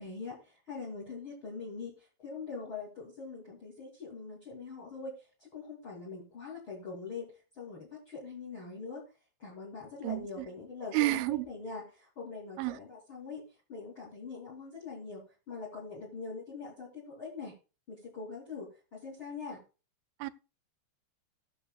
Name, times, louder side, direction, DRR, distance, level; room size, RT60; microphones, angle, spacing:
voice 1, 0.0-2.0 2.2-5.1 5.4-9.0 9.4-17.5 17.9-19.6, left 4 dB, 30° left, 3.0 m, -43 dB
voice 2, 10.0-10.5 10.9-11.5 12.6-12.8 20.2-20.3, right 18 dB, 85° right, 3.0 m, -30 dB
18.5 x 7.1 x 2.3 m
omnidirectional pair, 5.3 m